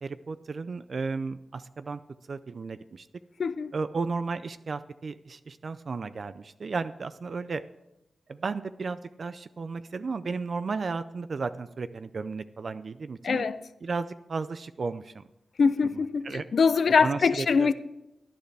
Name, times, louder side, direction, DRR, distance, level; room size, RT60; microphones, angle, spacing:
voice 1, 0.0-2.0 2.3-3.1 3.7-7.6 8.3-13.5 13.8-15.2 16.2-16.5 17.0-17.7, right 4 dB, 60° right, 0.4 m, -34 dB
voice 2, 3.4-3.7 13.2-13.6 15.6-17.7, left 5 dB, 70° left, 0.6 m, -23 dB
18.0 x 10.5 x 3.4 m
cardioid pair, 65°, 0 cm